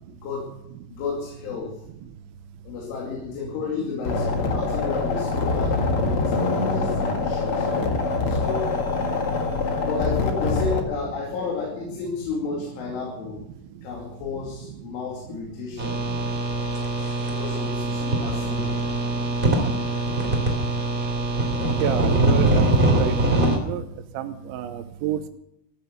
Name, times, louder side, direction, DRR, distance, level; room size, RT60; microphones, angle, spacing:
voice 1, 0.1-0.5 0.9-1.8 2.6-7.7 8.2-8.8 9.8-13.4 13.8-16.0 17.3-18.7, left 5 dB, 85° left, 0 dB, 5.0 m, -32 dB
sound 1, 4.0-10.8, left 3 dB, 55° left, 1.5 m, -24 dB
sound 2, 15.8-23.6, right 2 dB, 15° right, 2.3 m, -23 dB
voice 2, 21.8-23.1 23.5-23.8 24.1-25.3, right 11 dB, 80° right, 7 dB, 3.1 m, -29 dB
15.0 x 12.5 x 6.8 m, 0.78 s
omnidirectional pair, 5.5 m